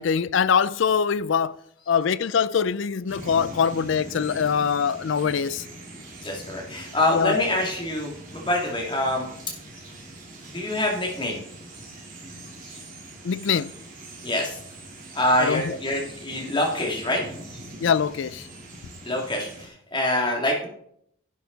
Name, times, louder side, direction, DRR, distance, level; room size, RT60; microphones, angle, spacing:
voice 1, 0.0-1.6 1.9-5.6 7.1-7.4 13.2-13.7 15.4-15.8 17.8-18.5, left 6 dB, 65° left, 0.4 m, -23 dB
sound 1, 3.1-19.7, right 1 dB, 40° right, 2.3 m, -42 dB
voice 2, 6.2-9.3 9.8-9.9 10.5-11.4 12.6-12.8 14.2-14.6 15.1-17.2 19.0-20.7, left 1 dB, 25° left, 2.4 m, -25 dB
11.0 x 9.1 x 4.0 m
head